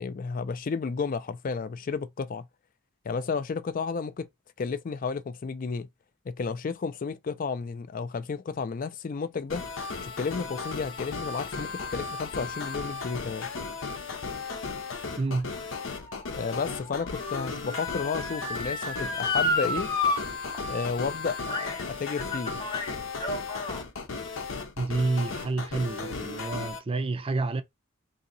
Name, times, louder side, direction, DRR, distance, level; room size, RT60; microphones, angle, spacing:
voice 1, 0.0-2.5 3.0-4.3 4.6-5.9 6.3-9.6 10.0-13.5 16.3-19.9 20.7-22.6, left 5 dB, 45° left, 0.4 m, -32 dB
sound 1, 9.5-26.8, left 4 dB, 80° left, 0.8 m, -36 dB
Motor vehicle (road) / Siren, 15.0-20.2 20.5-20.6 21.5-21.8 22.2-23.8 24.5-24.6, left 2 dB, 20° left, 0.8 m, -32 dB
voice 2, 15.2-15.5 24.8-27.6, right 3 dB, 30° right, 0.4 m, -29 dB
2.8 x 2.8 x 3.8 m
head